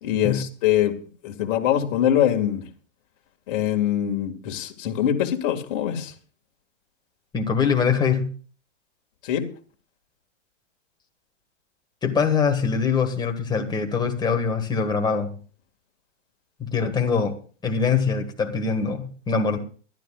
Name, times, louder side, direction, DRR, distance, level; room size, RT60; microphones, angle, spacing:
voice 1, 0.0-0.9 1.2-2.6 3.5-6.1 9.2-9.5, left 11 dB, 45° left, 3 dB, 2.1 m, -23 dB
voice 2, 7.3-8.3 12.0-15.4 16.6-17.4 17.6-19.6, left 5 dB, 10° left, 4 dB, 1.7 m, -23 dB
23.0 x 12.0 x 2.4 m, 0.40 s
hypercardioid pair, 125°, 37 cm